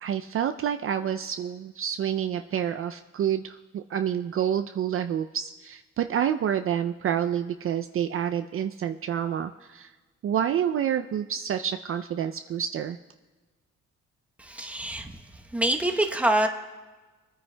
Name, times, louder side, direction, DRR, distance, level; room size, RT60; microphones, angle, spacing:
voice 1, 0.0-9.9 10.2-13.0, right 9 dB, 45° right, 8 dB, 0.4 m, -28 dB
voice 2, 14.4-15.1 15.5-16.5, right 1 dB, 5° right, 3 dB, 0.9 m, -25 dB
24.0 x 9.4 x 2.2 m, 1.3 s
cardioid pair, 90°, 30 cm